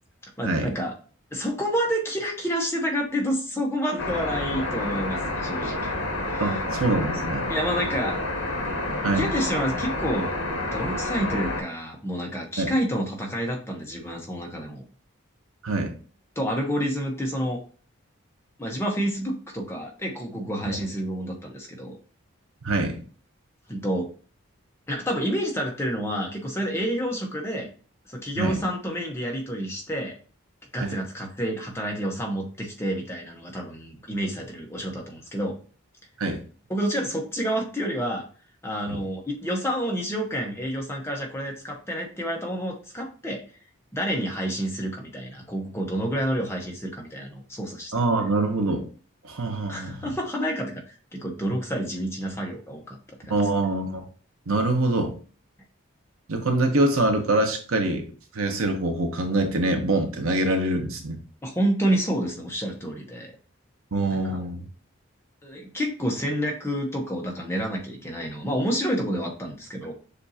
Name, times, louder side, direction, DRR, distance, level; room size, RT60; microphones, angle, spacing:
voice 1, 0.4-0.9 1.3-6.0 6.3-6.5 7.5-8.2 9.1-10.3 10.7-14.8 16.4-17.6 18.6-22.0 23.7-24.1 24.9-27.7 28.1-30.1 30.7-35.6 36.7-38.3 38.6-43.4 43.9-47.9 48.2-48.3 49.7-53.0 53.2-53.4 61.4-63.3 64.1-64.4 65.4-69.9, equal, 10° left, 0 dB, 0.9 m, -29 dB
sound 1, 4.0-11.6, left 2 dB, 65° left, 1.3 m, -29 dB
voice 2, 6.4-7.5 9.0-9.3 12.6-12.7 15.6-15.9 20.7-20.8 22.6-23.0 28.4-28.6 30.8-31.0 36.2-36.4 38.9-39.0 47.9-48.9 49.2-50.1 53.3-54.1 54.5-55.2 56.3-58.1 58.3-61.2 63.9-64.6, right 2 dB, 90° right, 4 dB, 0.9 m, -24 dB
6.8 x 2.6 x 2.7 m, 0.40 s
head